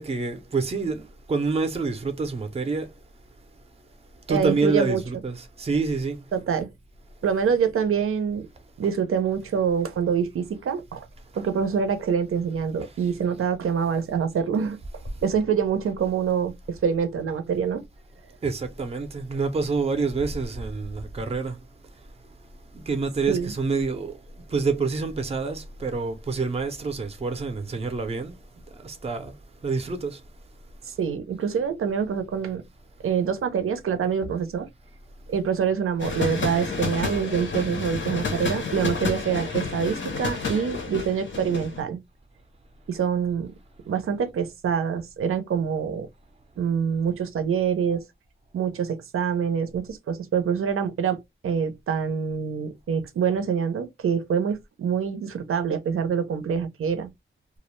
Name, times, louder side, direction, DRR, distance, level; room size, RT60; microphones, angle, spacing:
voice 1, 0.0-2.9 4.3-6.2 8.8-8.9 11.3-11.4 12.8-12.9 18.4-21.6 22.7-24.2 24.5-28.4 28.8-29.3 29.6-30.2, right 4 dB, 30° right, 0.5 m, -27 dB
voice 2, 4.3-5.0 6.3-6.7 7.2-8.5 8.8-11.1 11.4-14.8 15.2-17.8 23.3-23.5 31.0-32.6 33.0-34.7 35.3-42.0 42.9-43.5 43.9-46.1 46.6-48.0 48.5-51.2 51.4-57.1, right 7 dB, 90° right, 0.5 m, -25 dB
sound 1, 36.0-41.8, left 4 dB, 60° left, 0.7 m, -30 dB
2.3 x 2.0 x 3.0 m
wide cardioid pair, 135°, 21 cm